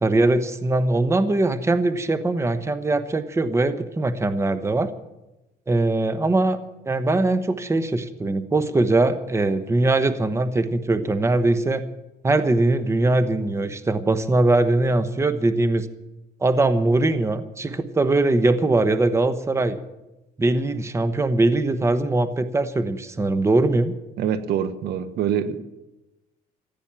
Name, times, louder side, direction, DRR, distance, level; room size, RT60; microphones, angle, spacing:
voice 1, 0.0-4.9 5.7-6.6 6.8-11.8 12.2-15.9 16.4-19.8 20.4-23.9, right 2 dB, 15° right, 11 dB, 1.0 m, -21 dB
voice 2, 24.2-25.6, right 9 dB, 75° right, 11 dB, 1.3 m, -25 dB
15.0 x 8.9 x 8.8 m, 0.99 s
cardioid pair, 110°, 17 cm